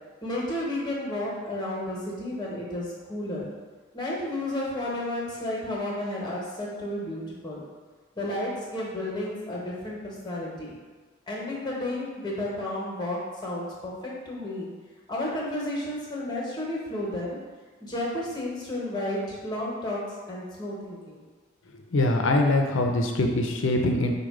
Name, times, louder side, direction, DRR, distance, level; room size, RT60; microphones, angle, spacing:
voice 1, 0.2-3.5 3.9-7.6 8.1-10.7 11.3-14.7 15.1-17.4 17.8-21.3, left 1 dB, 20° left, -4 dB, 1.0 m, -32 dB
voice 2, 21.9-24.1, left 2 dB, 85° left, 3 dB, 0.6 m, -23 dB
4.9 x 2.3 x 4.7 m, 1.4 s
head